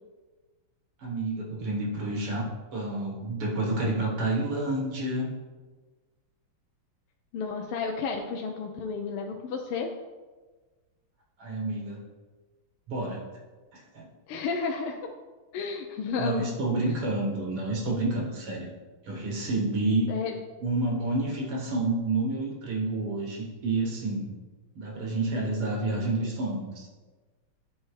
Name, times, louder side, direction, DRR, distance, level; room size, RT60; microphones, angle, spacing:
voice 1, 1.0-5.3 11.4-12.0 12.9-13.3 13.7-14.1 16.2-18.7 19.0-20.1 20.6-24.3 24.8-26.9, right 2 dB, 85° right, -2 dB, 2.5 m, -29 dB
voice 2, 7.3-9.9 14.3-15.0 15.5-16.5 20.1-20.4, left 5 dB, 85° left, 2 dB, 1.5 m, -32 dB
10.5 x 4.4 x 3.2 m, 1.3 s
omnidirectional pair, 2.4 m